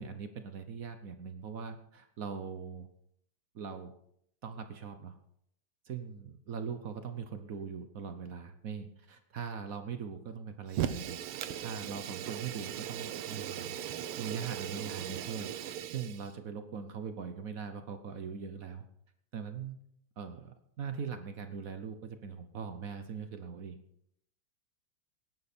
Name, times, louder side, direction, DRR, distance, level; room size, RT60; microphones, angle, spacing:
voice 1, 0.0-2.9 3.5-3.9 4.4-5.1 5.8-11.2 11.6-13.7 14.2-15.5 15.9-18.8 19.3-19.8 20.2-23.8, right 6 dB, 55° right, 8 dB, 1.0 m, -41 dB
Fire, 10.7-16.3, right 10 dB, 90° right, 1.7 m, -38 dB
18.0 x 11.0 x 4.3 m, 0.72 s
omnidirectional pair, 2.4 m